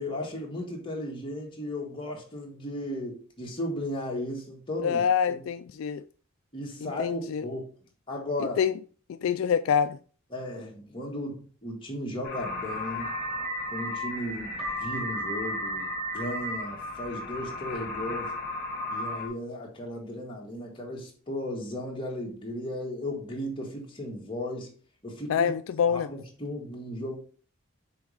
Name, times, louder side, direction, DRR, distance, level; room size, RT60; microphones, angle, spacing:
voice 1, 0.0-5.0 5.3-5.4 6.5-7.6 8.1-8.6 10.3-13.1 13.7-18.3 18.9-24.7 25.0-25.5 25.9-27.2, left 1 dB, 25° left, 1.7 m, -35 dB
voice 2, 4.8-6.0 6.8-7.4 8.6-8.7 9.1-10.0 25.3-26.1, left 7 dB, 70° left, 0.3 m, -26 dB
sound 1, 12.2-19.3, equal, 50° left, 1.8 m, -34 dB
Keyboard (musical), 14.6-17.1, left 4 dB, 5° right, 2.7 m, -43 dB
6.0 x 4.2 x 4.9 m
head